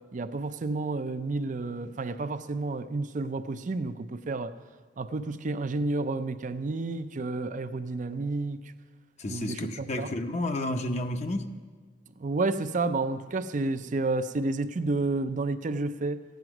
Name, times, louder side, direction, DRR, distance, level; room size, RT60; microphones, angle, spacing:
voice 1, 0.1-4.6 5.0-8.6 9.3-10.1 12.2-16.2, right 3 dB, 45° right, 0.5 m, -30 dB
voice 2, 9.2-11.6, left 1 dB, 40° left, 0.7 m, -31 dB
15.0 x 9.4 x 6.0 m
head